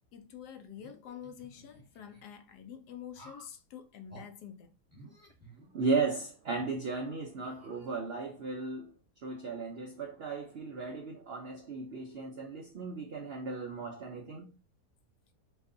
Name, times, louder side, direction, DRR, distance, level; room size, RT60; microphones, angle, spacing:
voice 1, 0.1-4.7, left 9 dB, 75° left, 1.2 m, -47 dB
sound 1, 0.8-2.2 3.1-3.6 4.1-4.3 4.9-6.1 6.6-6.7 7.4-8.3, right 1 dB, 10° right, 1.1 m, -55 dB
voice 2, 5.7-8.9 9.2-14.5, right 4 dB, 85° right, 0.5 m, -35 dB
6.6 x 2.4 x 2.6 m
omnidirectional pair, 1.8 m